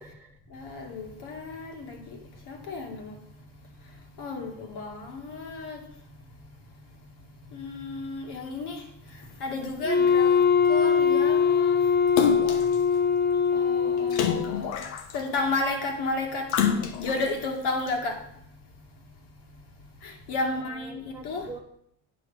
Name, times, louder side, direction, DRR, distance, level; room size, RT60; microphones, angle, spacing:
voice 1, 0.0-0.3 20.5-21.6, right 3 dB, 5° right, -2 dB, 1.3 m, -45 dB
voice 2, 0.5-2.2 2.5-3.1 4.2-5.8 7.5-8.8 9.4-10.4 10.7-11.8 13.5-14.7 15.1-16.5 17.0-18.2 20.0-21.4, left 3 dB, 55° left, 2 dB, 2.1 m, -32 dB
Wind instrument woodwind instrument, 9.8-14.6, left 6 dB, 20° left, 0.7 m, -22 dB
Splash splatter, 12.2-12.8 14.1-15.3 16.5-17.3 17.9-18.0, left 7 dB, 80° left, 1.2 m, -27 dB
9.3 x 5.7 x 4.8 m, 0.70 s
supercardioid pair, 130°, 49 cm